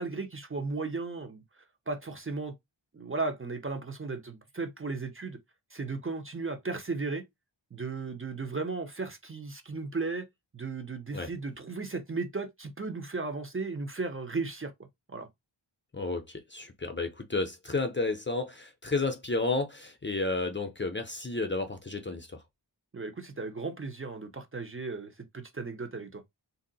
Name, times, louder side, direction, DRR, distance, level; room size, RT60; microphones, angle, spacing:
voice 1, 0.0-1.4 1.9-2.5 2.9-5.4 5.7-7.2 7.7-10.3 10.5-14.7 15.1-15.3 22.9-26.2, right 3 dB, 30° right, 0.6 m, -35 dB
voice 2, 15.9-22.4, left 3 dB, 25° left, 0.6 m, -32 dB
2.6 x 2.1 x 3.9 m
wide cardioid pair, 70°, 47 cm